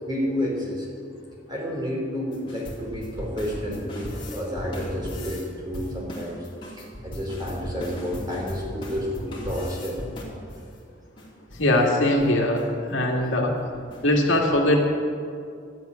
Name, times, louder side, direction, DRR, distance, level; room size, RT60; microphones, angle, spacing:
voice 1, 0.0-0.9 1.5-10.0, equal, 20° right, -3 dB, 3.2 m, -30 dB
sound 1, 2.3-5.4 5.7-10.7 11.2-11.3 11.5-11.7 12.0-12.3 12.5-12.6 13.1-13.3 13.7-14.2, equal, 25° left, 2.7 m, -37 dB
voice 2, 11.6-13.6 14.0-14.8, left 1 dB, 80° left, 0 dB, 2.0 m, -21 dB
12.0 x 8.2 x 9.3 m, 2.3 s
head